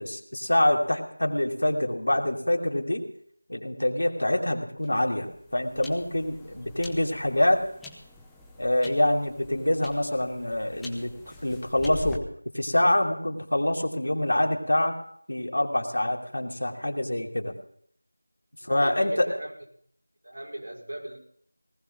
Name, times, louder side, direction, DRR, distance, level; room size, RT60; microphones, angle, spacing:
voice 1, 0.0-3.0 3.5-7.6 8.6-12.3 12.5-14.9 15.3-17.5 18.6-19.3, left 1 dB, 75° left, 1 dB, 2.7 m, -26 dB
sound 1, 4.8-12.2, left 2 dB, ahead, 0.7 m, -44 dB
voice 2, 18.6-19.5 20.2-21.2, right 1 dB, 75° right, -2 dB, 5.5 m, -39 dB
18.5 x 14.5 x 4.0 m, 0.63 s
figure-of-eight pair, 170°, 0 cm